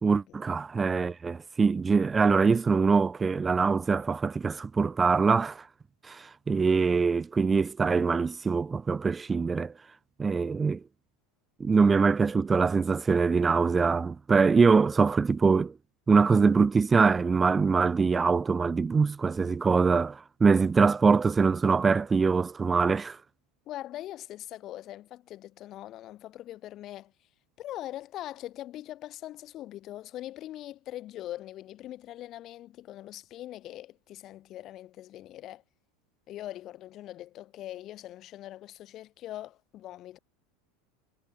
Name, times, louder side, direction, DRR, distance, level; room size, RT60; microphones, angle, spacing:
voice 1, 0.0-5.7 6.0-9.7 10.2-10.8 11.6-15.7 16.1-23.2, right 5 dB, 20° right, 1.2 m, -23 dB
voice 2, 23.7-27.1 27.6-35.6 36.3-40.2, left 14 dB, 45° left, 3.8 m, -42 dB
figure-of-eight pair, 80°, 0 cm